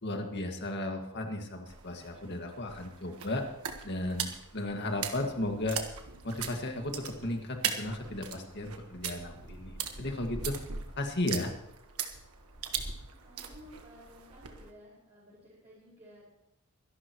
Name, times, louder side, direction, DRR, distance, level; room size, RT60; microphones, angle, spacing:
voice 1, 0.0-3.5 3.8-5.8 6.2-10.6 11.0-11.5, left 1 dB, 50° left, 3 dB, 1.9 m, -35 dB
sound 1, 1.7-14.7, right 7 dB, 85° right, 1.4 m, -40 dB
voice 2, 13.1-16.2, equal, 30° right, -9 dB, 5.5 m, -54 dB
23.5 x 11.5 x 3.1 m, 0.85 s
head